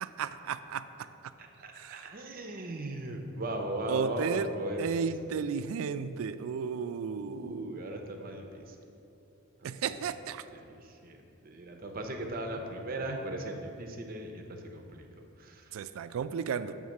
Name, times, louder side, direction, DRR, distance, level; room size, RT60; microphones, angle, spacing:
voice 1, 0.0-1.3 1.8-2.1 3.9-4.5 4.8-7.8 9.6-10.4 15.7-16.8, right 6 dB, 80° right, 12 dB, 0.3 m, -34 dB
voice 2, 1.6-5.0 7.1-8.7 9.9-10.0 10.8-15.1 15.4-15.6, right 1 dB, 45° right, 3 dB, 0.6 m, -38 dB
7.2 x 3.6 x 6.3 m, 2.8 s
head